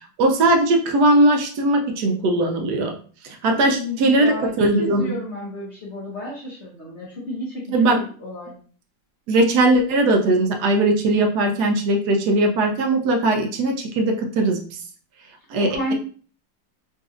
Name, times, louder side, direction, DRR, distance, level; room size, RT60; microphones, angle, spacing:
voice 1, 0.2-2.9 3.2-5.1 7.7-8.0 9.3-14.8 15.5-15.9, right 2 dB, 70° right, 2 dB, 1.1 m, -19 dB
voice 2, 3.6-4.5 4.8-8.5 15.6-15.9, left 1 dB, 50° left, -5 dB, 0.9 m, -31 dB
3.9 x 2.6 x 2.4 m, 0.43 s
omnidirectional pair, 2.0 m